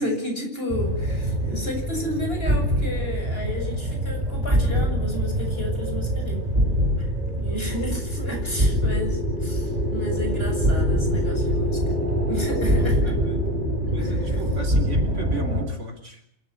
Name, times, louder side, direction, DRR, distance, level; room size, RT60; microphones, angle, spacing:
voice 1, 0.0-6.4 7.4-12.0 12.3-13.0 14.0-14.1, left 1 dB, 45° left, 2 dB, 7.3 m, -32 dB
sound 1, 0.7-15.6, equal, 30° right, 5.5 m, -24 dB
voice 2, 7.7-8.3 12.6-13.4 13.9-16.2, right 2 dB, 60° right, 5 dB, 3.9 m, -36 dB
27.0 x 13.0 x 9.8 m, 0.75 s
omnidirectional pair, 1.4 m